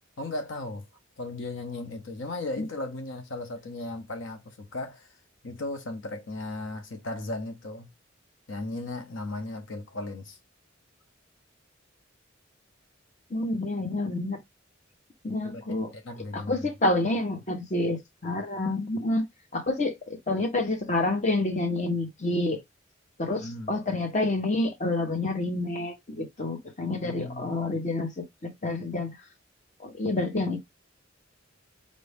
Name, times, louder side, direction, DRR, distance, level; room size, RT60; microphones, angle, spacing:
voice 1, 0.2-0.9 1.2-5.1 5.4-7.9 8.5-10.4 15.4-16.7 23.3-23.7 27.0-27.5, left 2 dB, 70° left, 0.8 m, -36 dB
voice 2, 13.3-14.4 15.2-15.9 16.3-19.2 19.5-22.6 23.2-29.1 29.8-30.6, left 2 dB, 35° left, 1.1 m, -28 dB
5.3 x 2.6 x 3.4 m
head